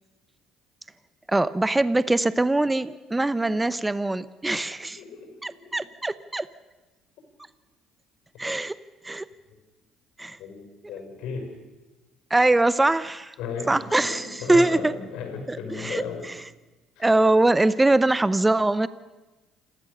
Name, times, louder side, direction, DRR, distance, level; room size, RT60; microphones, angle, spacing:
voice 1, 1.3-5.0 5.4-6.5 8.4-8.7 9.0-9.2 10.2-10.4 12.3-13.3 13.7-14.9 15.5-16.0 17.0-18.9, right 2 dB, 15° right, 16 dB, 0.8 m, -22 dB
voice 2, 5.0-5.9 10.4-11.5 13.4-16.3 17.0-17.1, left 5 dB, 70° left, 4 dB, 5.5 m, -35 dB
28.0 x 13.5 x 6.7 m, 1.1 s
hypercardioid pair, 60°, 0 cm